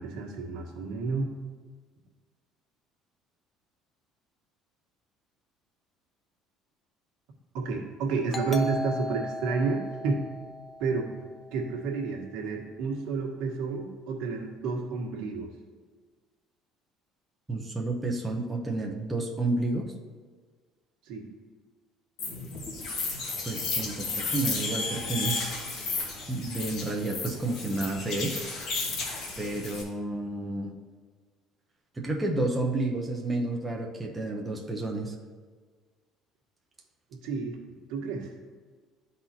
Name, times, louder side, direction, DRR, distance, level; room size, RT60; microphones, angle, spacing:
voice 1, 0.0-1.3 7.5-10.2 10.8-11.1 11.5-15.5 21.1-21.3 37.1-37.6 37.9-38.3, right 4 dB, 80° right, 0 dB, 1.3 m, -30 dB
Doorbell, 8.3-11.7, left 1 dB, 25° left, 0.5 m, -36 dB
voice 2, 17.5-19.9 23.4-25.3 26.3-28.4 29.4-30.7 32.0-35.1, right 2 dB, 15° right, 0 dB, 0.8 m, -30 dB
sound 1, 22.2-29.8, left 3 dB, 55° left, 1.5 m, -33 dB
12.0 x 4.1 x 2.9 m, 1.5 s
cardioid pair, 140°, 0 cm